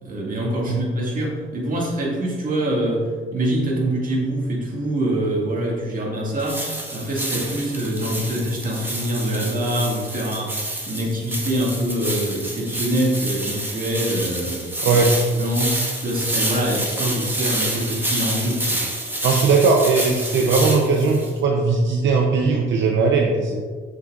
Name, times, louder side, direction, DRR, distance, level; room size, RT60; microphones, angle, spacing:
voice 1, 0.0-15.0 15.3-18.8, right 1 dB, 45° right, -2 dB, 1.9 m, -25 dB
sound 1, 6.4-21.3, right 1 dB, 10° right, 1.5 m, -28 dB
voice 2, 19.2-23.6, right 4 dB, 70° right, 1 dB, 0.7 m, -18 dB
7.3 x 6.7 x 2.5 m, 1.5 s
cardioid pair, 90°, 20 cm